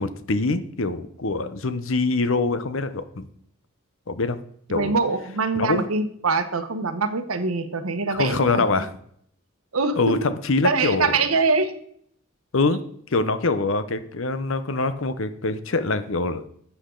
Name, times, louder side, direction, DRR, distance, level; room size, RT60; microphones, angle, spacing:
voice 1, 0.0-3.3 4.1-4.4 4.7-4.9 5.6-5.9 8.1-8.9 10.0-11.1 12.5-12.8 13.1-16.5, left 3 dB, 65° left, 12 dB, 0.8 m, -24 dB
voice 2, 4.7-8.6 9.7-10.2 10.6-11.7, right 4 dB, 80° right, 9 dB, 1.1 m, -24 dB
12.0 x 8.4 x 3.9 m, 0.65 s
head